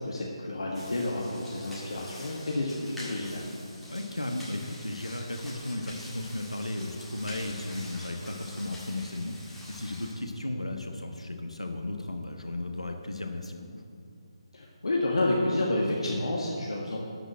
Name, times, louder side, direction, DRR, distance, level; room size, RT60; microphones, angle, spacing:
voice 1, 0.0-3.4 14.5-17.0, left 2 dB, 65° left, -3 dB, 1.6 m, -30 dB
sound 1, 0.7-10.1, left 1 dB, ahead, 1.8 m, -46 dB
voice 2, 3.9-13.8, left 1 dB, 85° left, 4 dB, 1.1 m, -35 dB
12.0 x 5.1 x 7.8 m, 2.4 s
figure-of-eight pair, 150°, 3 cm